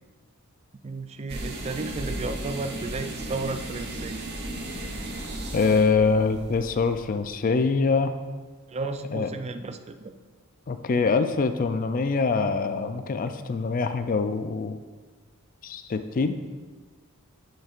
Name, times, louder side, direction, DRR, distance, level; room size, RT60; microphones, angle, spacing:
voice 1, 0.8-4.2 8.7-10.1, right 3 dB, 30° right, 8 dB, 0.4 m, -33 dB
sound 1, 1.3-7.2, right 1 dB, 50° right, 1.0 m, -35 dB
voice 2, 5.5-8.1 9.1-9.3 10.7-14.8 15.6-16.4, left 4 dB, 40° left, 9 dB, 0.4 m, -24 dB
10.5 x 6.4 x 2.5 m, 1.4 s
head